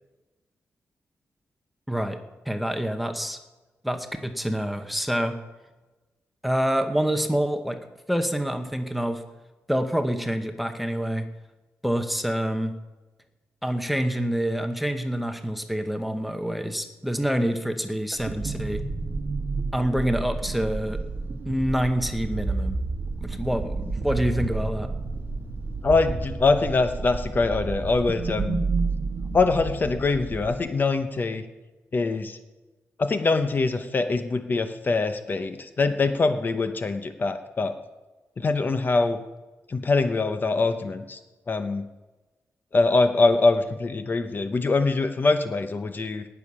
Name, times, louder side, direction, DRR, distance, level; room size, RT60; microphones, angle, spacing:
voice 1, 1.9-2.2 2.5-3.4 3.8-5.4 6.4-7.8 8.1-9.2 9.7-11.3 11.8-12.7 13.6-18.8 19.7-21.0 21.4-22.8 23.2-24.9, equal, ahead, 7 dB, 1.0 m, -26 dB
sound 1, 18.2-30.6, right 3 dB, 40° right, 1.3 m, -30 dB
voice 2, 25.8-28.6 29.3-31.4 31.9-32.4 33.0-37.7 38.4-39.2 39.7-41.2 41.5-41.8 42.7-46.3, left 3 dB, 35° left, 9 dB, 0.8 m, -23 dB
18.5 x 7.1 x 6.2 m, 1.2 s
wide cardioid pair, 145°, 6 cm